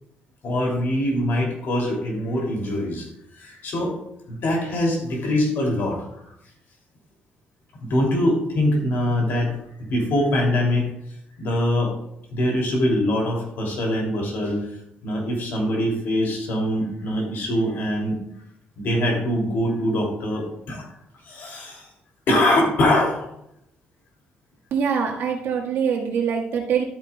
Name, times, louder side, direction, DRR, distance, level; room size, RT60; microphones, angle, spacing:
voice 1, 0.4-3.1 3.3-3.9 4.3-6.3 7.8-10.9 11.4-11.9 12.3-18.2 18.8-20.9 21.2-21.9 22.3-23.2, left 1 dB, 60° left, 1 dB, 2.9 m, -23 dB
voice 2, 24.7-26.8, right 7 dB, 75° right, -1 dB, 1.7 m, -24 dB
12.5 x 8.9 x 2.3 m, 0.78 s
cardioid pair, 160°, 4 cm